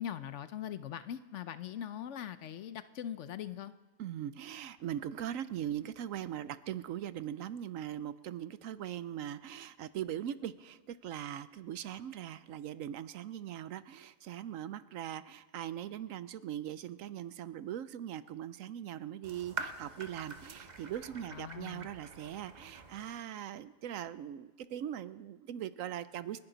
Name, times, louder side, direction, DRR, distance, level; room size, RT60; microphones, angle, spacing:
voice 1, 0.0-3.7 21.3-21.9, left 10 dB, 65° left, 13 dB, 0.9 m, -41 dB
voice 2, 4.0-26.4, right 10 dB, 75° right, 15 dB, 1.0 m, -40 dB
sound 1, 19.2-23.2, right 4 dB, 35° right, 1.0 m, -45 dB
29.5 x 10.5 x 3.9 m, 1.3 s
omnidirectional pair, 1.4 m